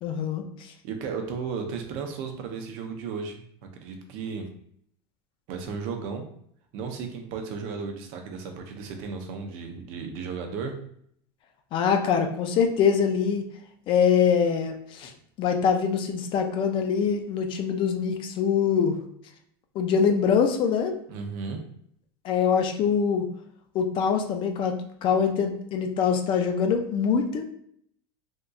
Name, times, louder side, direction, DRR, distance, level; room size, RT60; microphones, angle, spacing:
voice 1, 0.0-0.7 11.7-13.4 13.9-15.1 15.4-19.0 19.7-20.9 22.2-23.3 23.7-27.4, left 6 dB, 35° left, 5 dB, 0.4 m, -24 dB
voice 2, 0.8-3.5 3.7-4.4 5.5-6.2 6.7-10.7 21.1-21.6, right 5 dB, 55° right, 4 dB, 0.6 m, -34 dB
3.5 x 2.6 x 2.3 m, 0.65 s
supercardioid pair, 140°, 14 cm